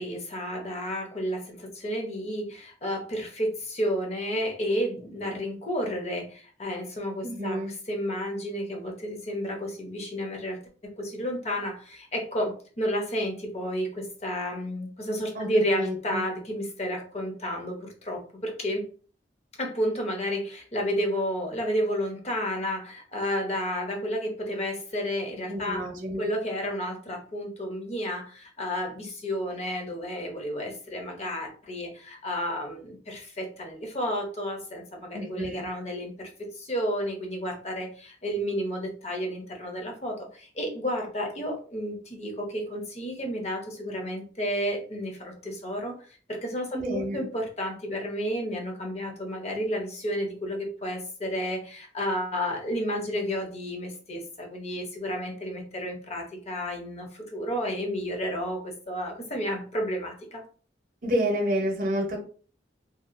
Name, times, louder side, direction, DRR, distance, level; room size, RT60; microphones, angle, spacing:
voice 1, 0.0-7.6 7.9-10.6 11.0-18.8 19.6-25.8 26.2-60.4, equal, 35° left, 1 dB, 0.7 m, -31 dB
voice 2, 7.2-7.7 15.3-15.5 15.8-16.2 25.5-26.3 35.1-35.7 46.7-47.3 61.0-62.2, equal, 50° right, 1 dB, 0.7 m, -29 dB
2.8 x 2.4 x 2.5 m, 0.41 s
head